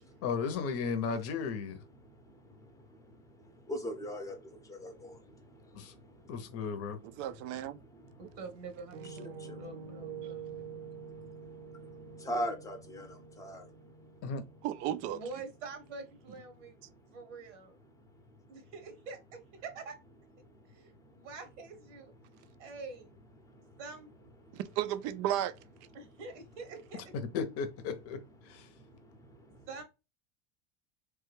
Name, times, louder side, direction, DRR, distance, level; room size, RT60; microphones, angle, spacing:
voice 1, 0.2-1.8 5.7-5.9 6.3-7.0 14.2-14.4 27.3-28.7, left 5 dB, 40° left, 0.7 m, -35 dB
voice 2, 2.0-6.5 7.8-8.2 9.1-9.7 10.2-14.1 20.8-20.9 22.3-22.6 23.5-23.7 24.5-24.6 28.7-29.7, equal, 10° left, 0.7 m, -43 dB
voice 3, 7.2-7.8 14.6-15.2 24.5-25.5, right 12 dB, 45° right, 0.4 m, -33 dB
voice 4, 8.2-10.9 15.1-17.8 18.5-20.0 20.7-22.1 22.6-23.1 23.8-24.1 25.9-27.0 29.7-29.8, right 4 dB, 85° right, 1.1 m, -46 dB
Piano, 8.9-16.8, right 6 dB, 65° right, 0.8 m, -48 dB
3.2 x 2.2 x 3.2 m
supercardioid pair, 125°, 36 cm